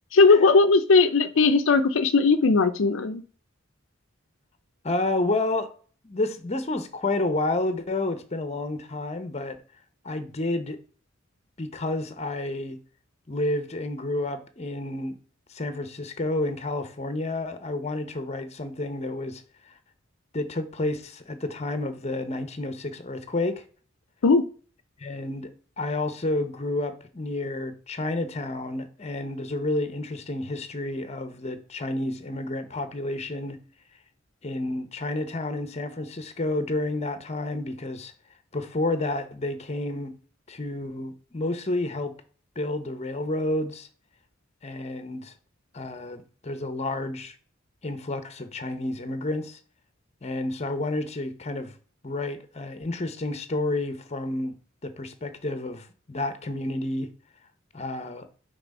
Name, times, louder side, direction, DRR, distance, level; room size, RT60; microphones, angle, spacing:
voice 1, 0.1-3.2 24.2-24.4, left 4 dB, 75° left, 0.5 m, -18 dB
voice 2, 4.8-5.7 6.0-9.6 10.0-10.8 11.6-12.8 13.3-15.2 15.5-19.7 20.3-23.6 25.0-25.5 25.8-33.6 34.4-38.1 38.5-40.2 40.5-42.1 42.6-43.9 44.6-45.3 45.7-47.4 47.8-49.6 50.2-51.7 52.0-54.5 54.8-57.1 57.7-58.3, left 2 dB, 35° left, 0.8 m, -30 dB
5.9 x 3.7 x 5.4 m
head